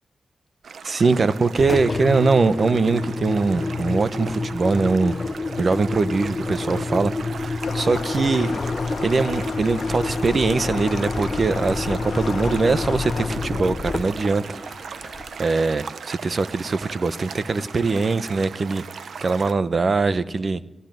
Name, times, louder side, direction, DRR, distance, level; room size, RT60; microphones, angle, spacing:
sound 1, 0.6-19.5, right 6 dB, 80° right, 0.8 m, -38 dB
voice 1, 0.8-5.1 5.6-8.5 9.0-14.4 15.0-15.1 15.4-18.8 19.2-20.6, right 4 dB, 55° right, 13 dB, 1.0 m, -22 dB
Engine, 1.6-15.5, left 3 dB, 50° left, 0.8 m, -29 dB
sound 2, 7.6-13.3, left 6 dB, 80° left, 1.2 m, -34 dB
18.0 x 17.5 x 9.3 m, 1.0 s
cardioid pair, 50°, 0 cm